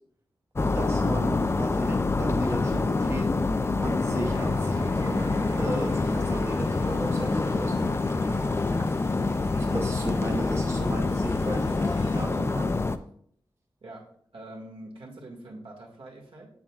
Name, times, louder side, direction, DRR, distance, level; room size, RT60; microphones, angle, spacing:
sound 1, 0.6-13.0, left 3 dB, 30° left, 0.4 m, -26 dB
voice 1, 0.7-3.3 3.8-5.2 5.6-7.9 9.5-12.9, right 1 dB, 30° right, 1 dB, 0.7 m, -35 dB
sound 2, 4.2-12.3, right 1 dB, 55° right, 2.3 m, -49 dB
voice 2, 14.3-16.5, right 1 dB, 80° right, -2 dB, 1.9 m, -44 dB
7.4 x 7.4 x 2.4 m, 0.63 s
wide cardioid pair, 120°, 9 cm